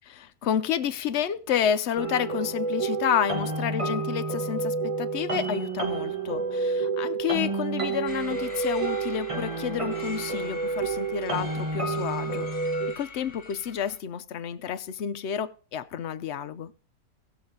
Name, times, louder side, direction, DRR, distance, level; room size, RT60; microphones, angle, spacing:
voice 1, 0.1-12.5 13.0-16.7, left 8 dB, 55° left, 0.9 m, -30 dB
sound 1, 2.0-12.9, right 4 dB, 20° right, 1.3 m, -29 dB
sound 2, 8.1-14.0, left 3 dB, 35° left, 1.8 m, -43 dB
16.5 x 7.6 x 3.7 m
omnidirectional pair, 1.6 m